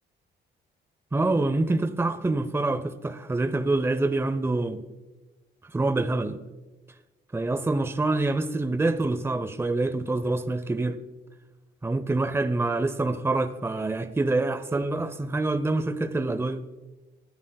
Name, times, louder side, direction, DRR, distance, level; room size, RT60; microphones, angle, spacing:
voice 1, 1.1-4.8 5.7-6.4 7.3-11.0 11.8-16.6, right 2 dB, 10° right, 0.7 m, -26 dB
20.5 x 10.5 x 2.3 m
cardioid pair, 90°, 20 cm